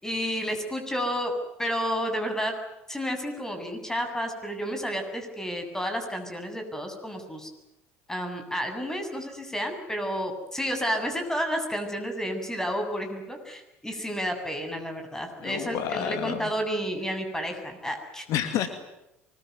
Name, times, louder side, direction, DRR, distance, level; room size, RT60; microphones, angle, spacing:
voice 1, 0.0-1.3 1.6-2.6 2.9-7.5 8.1-18.2, equal, 10° left, 5 dB, 7.9 m, -31 dB
voice 2, 15.4-16.5 18.3-18.7, left 10 dB, 60° left, 9 dB, 2.5 m, -29 dB
24.5 x 22.0 x 9.6 m, 0.90 s
hypercardioid pair, 65°, 7 cm